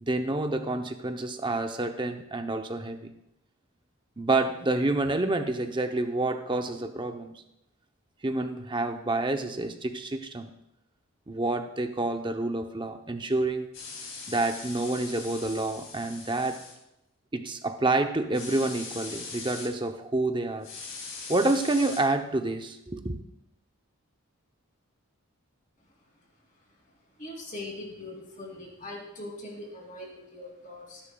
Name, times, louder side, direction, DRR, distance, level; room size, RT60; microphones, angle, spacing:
voice 1, 0.0-3.1 4.2-7.3 8.2-10.5 11.3-13.7 14.3-16.6 17.3-20.7 21.3-23.2, right 2 dB, 20° right, 6 dB, 0.7 m, -28 dB
sound 1, 13.7-16.7 18.3-19.7 20.6-22.0, left 4 dB, 55° left, 2.9 m, -41 dB
voice 2, 27.2-31.0, left 2 dB, 35° left, 0 dB, 2.9 m, -41 dB
17.5 x 10.5 x 2.3 m, 0.84 s
head